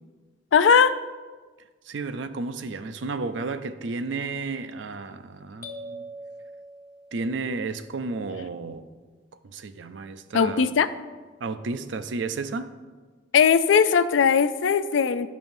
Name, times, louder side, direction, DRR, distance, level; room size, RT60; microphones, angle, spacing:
voice 1, 0.5-0.9 10.3-10.9 13.3-15.3, left 6 dB, 90° left, 13 dB, 0.4 m, -19 dB
voice 2, 1.8-6.1 7.1-8.9 9.4-10.8 11.4-12.7, right 3 dB, 85° right, 11 dB, 0.5 m, -32 dB
sound 1, 5.6-7.5, right 1 dB, 50° left, 1.1 m, -41 dB
15.5 x 5.6 x 2.6 m, 1.4 s
head